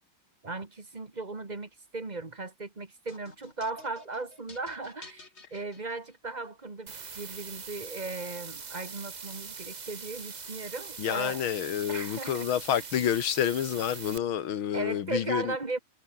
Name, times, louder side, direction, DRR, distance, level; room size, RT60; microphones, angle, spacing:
voice 1, 0.4-11.5 11.9-12.5 14.7-15.8, right 3 dB, 20° right, 1.7 m, -37 dB
sound 1, 3.1-6.5, left 3 dB, 30° left, 3.0 m, -52 dB
sound 2, 6.9-14.2, right 5 dB, 45° right, 0.5 m, -42 dB
voice 2, 11.0-15.5, left 9 dB, 75° left, 2.2 m, -29 dB
omnidirectional pair, 2.3 m